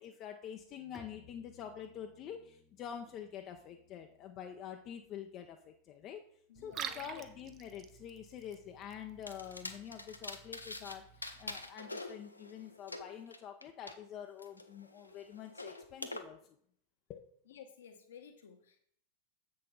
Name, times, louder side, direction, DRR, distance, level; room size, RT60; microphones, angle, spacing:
voice 1, 0.0-6.2 6.6-11.0 11.4-16.4 17.1-17.2, left 9 dB, 35° left, 5 dB, 0.5 m, -47 dB
Bowed string instrument, 0.9-6.5, left 2 dB, ahead, 0.8 m, -64 dB
voice 2, 6.5-7.2 17.5-18.8, left 8 dB, 60° left, 5 dB, 1.0 m, -54 dB
Liquid, 6.5-11.5, right 8 dB, 30° right, 0.6 m, -49 dB
sound 1, 9.3-11.0 11.2-13.9 14.4-16.2, left 2 dB, 85° left, 0.6 m, -45 dB
7.5 x 6.0 x 3.7 m, 0.64 s
figure-of-eight pair, 90°, 0 cm